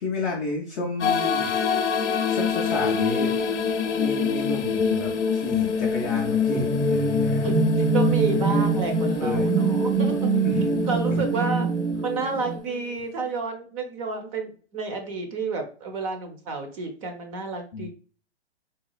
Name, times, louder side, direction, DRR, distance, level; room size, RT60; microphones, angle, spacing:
voice 1, 0.0-1.5 2.2-3.3 4.0-7.5 9.2-9.5 10.4-10.6 17.7-17.9, left 3 dB, 15° left, -4 dB, 0.4 m, -31 dB
sound 1, 1.0-12.8, left 6 dB, 85° left, 0.6 m, -26 dB
sound 2, 6.0-12.6, right 6 dB, 80° right, 0.6 m, -25 dB
voice 2, 7.4-10.3 10.9-11.7 12.0-17.9, right 4 dB, 30° right, 5 dB, 0.6 m, -30 dB
4.0 x 2.3 x 2.2 m, 0.40 s
hypercardioid pair, 130°, 35 cm